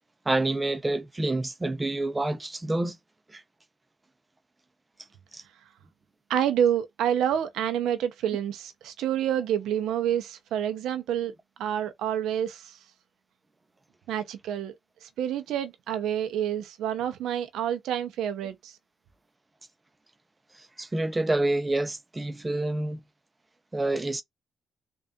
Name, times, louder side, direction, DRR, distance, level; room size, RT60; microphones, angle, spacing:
voice 1, 0.3-3.0 3.3-3.4 5.3-5.4 20.8-23.0 23.7-24.2, right 2 dB, 20° right, 0.7 m, -27 dB
voice 2, 6.3-11.3 11.6-12.8 14.1-14.7 15.0-18.7, right 10 dB, 85° right, 0.8 m, -28 dB
4.0 x 2.6 x 3.6 m
cardioid pair, 90°, 0 cm